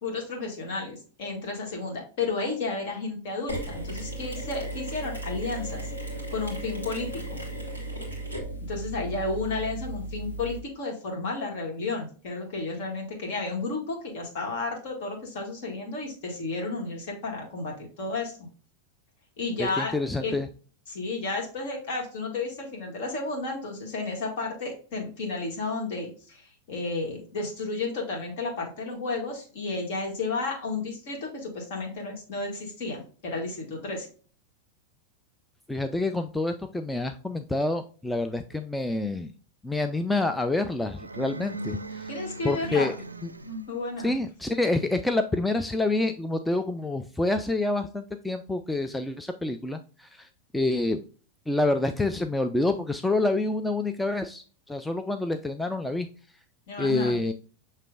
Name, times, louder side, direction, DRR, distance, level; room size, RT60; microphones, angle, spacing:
voice 1, 0.0-5.9 6.3-7.4 8.6-18.5 19.4-19.9 20.2-20.3 20.9-34.1 42.1-42.9 43.4-44.1 56.7-57.2, left 3 dB, 50° left, 1 dB, 1.7 m, -32 dB
Mechanisms, 3.5-10.6, right 1 dB, 80° left, 1.7 m, -35 dB
voice 2, 19.6-20.5 35.7-39.3 39.6-42.1 42.4-42.9 44.0-50.3 50.5-51.0 51.5-56.1 56.8-57.3, left 2 dB, 5° left, 7 dB, 0.3 m, -27 dB
sound 1, 40.9-43.8, right 2 dB, 80° right, 0.3 m, -38 dB
6.6 x 3.2 x 2.4 m, 0.39 s
figure-of-eight pair, 90°, 0 cm